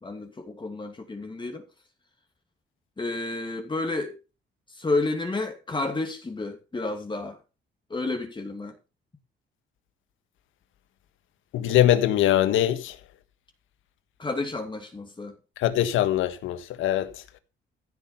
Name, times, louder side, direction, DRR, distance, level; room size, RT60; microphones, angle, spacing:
voice 1, 0.0-1.7 3.0-4.2 4.7-7.4 7.9-8.8 14.2-15.4, left 2 dB, 25° left, 2.7 m, -31 dB
voice 2, 11.5-13.0 15.6-17.2, left 12 dB, 85° left, 1.6 m, -22 dB
15.5 x 6.4 x 5.6 m
cardioid pair, 90°, 20 cm